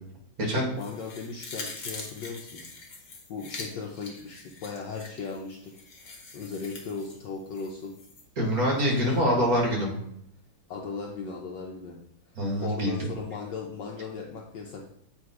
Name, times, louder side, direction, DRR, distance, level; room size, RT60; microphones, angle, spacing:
voice 1, 0.4-2.6 3.3-7.9 8.9-9.3 10.7-12.0 12.6-14.9, left 4 dB, 70° left, 0 dB, 1.3 m, -37 dB
sound 1, 0.8-8.2 8.6-8.7, left 3 dB, 50° left, 1.4 m, -44 dB
voice 2, 8.4-10.0 12.4-13.0, equal, 50° right, -1 dB, 2.0 m, -25 dB
7.7 x 3.4 x 4.7 m, 0.72 s
omnidirectional pair, 2.1 m